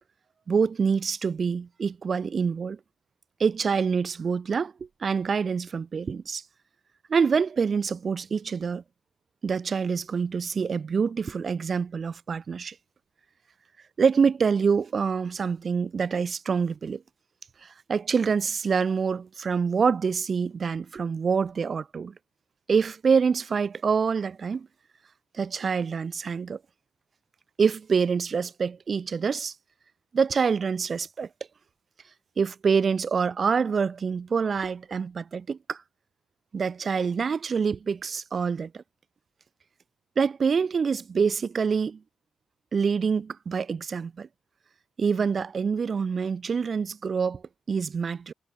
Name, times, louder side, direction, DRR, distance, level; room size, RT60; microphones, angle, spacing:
voice 1, 0.5-2.8 3.4-4.7 5.0-6.4 7.1-8.8 9.4-12.7 14.0-17.0 17.6-22.1 22.7-24.7 25.3-26.6 27.6-29.5 30.1-31.3 32.4-35.8 36.5-38.8 40.2-42.0 42.7-44.3 45.0-47.4 47.7-48.3, right 5 dB, 40° right, 0.7 m, -26 dB
cardioid pair, 90°, 0 cm